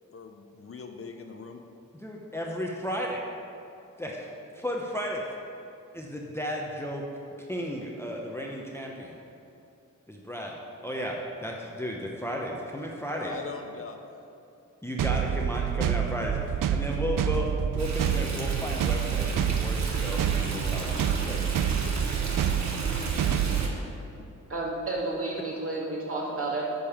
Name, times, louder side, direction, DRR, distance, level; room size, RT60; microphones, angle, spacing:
voice 1, 0.1-1.6 13.2-14.3 23.6-23.7, left 4 dB, 45° left, 4 dB, 0.7 m, -42 dB
voice 2, 1.9-3.3 4.0-5.4 5.9-7.0 7.5-9.2 10.1-10.6 10.8-13.3 14.8-17.5 17.7-21.4, equal, 10° left, -2 dB, 0.9 m, -34 dB
sound 1, 15.0-23.7, right 9 dB, 90° right, 0.5 m, -27 dB
Stream, 17.8-23.7, right 3 dB, 60° right, 1.3 m, -35 dB
voice 3, 24.5-26.6, right 2 dB, 45° right, -5 dB, 2.4 m, -31 dB
8.6 x 5.3 x 7.2 m, 2.7 s
wide cardioid pair, 95°, 31 cm